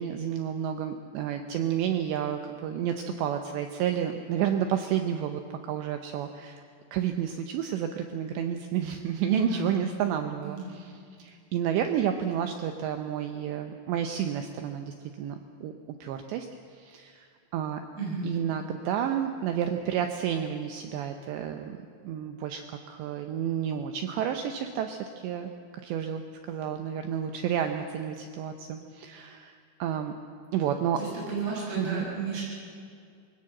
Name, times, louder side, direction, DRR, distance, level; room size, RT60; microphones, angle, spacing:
voice 1, 0.0-6.6 6.9-10.9 11.2-16.5 16.7-17.8 18.2-21.8 22.0-25.5 25.8-30.1 30.5-31.0 31.8-32.1, right 9 dB, 80° right, 6 dB, 2.5 m, -31 dB
voice 2, 9.2-9.7 10.4-10.8 17.9-18.3 31.0-32.4, right 3 dB, 35° right, -6 dB, 8.5 m, -32 dB
23.5 x 17.5 x 7.7 m, 2.3 s
omnidirectional pair, 6.0 m